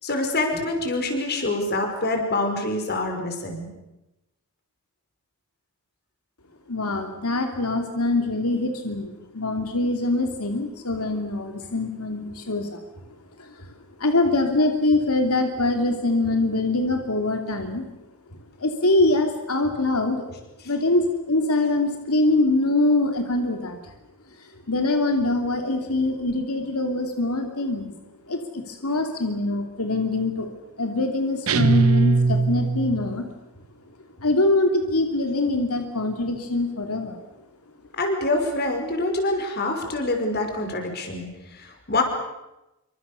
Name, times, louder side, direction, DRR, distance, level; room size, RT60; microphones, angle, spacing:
voice 1, 0.0-3.7 38.0-42.0, left 2 dB, 50° left, 4 dB, 5.6 m, -26 dB
voice 2, 6.7-12.8 13.4-13.7 14.0-17.9 18.6-20.3 20.6-23.8 24.4-27.9 28.3-30.5 30.8-33.3 34.2-37.2, left 2 dB, 90° left, 5 dB, 2.8 m, -24 dB
sound 1, 31.5-33.2, right 4 dB, 80° right, 1.0 m, -20 dB
27.5 x 25.5 x 6.9 m, 0.96 s
head